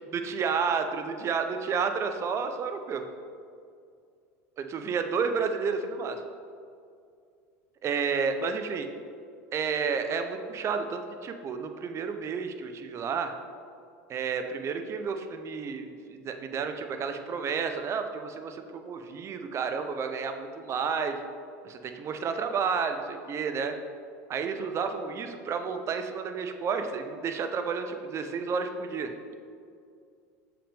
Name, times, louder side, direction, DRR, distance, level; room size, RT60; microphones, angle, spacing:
voice 1, 0.1-3.0 4.6-6.2 7.8-8.9 9.5-13.3 14.1-21.2 21.6-23.7 24.3-29.4, right 5 dB, 35° right, 7 dB, 0.7 m, -31 dB
7.0 x 5.8 x 3.5 m, 2.3 s
hypercardioid pair, 95°, 8 cm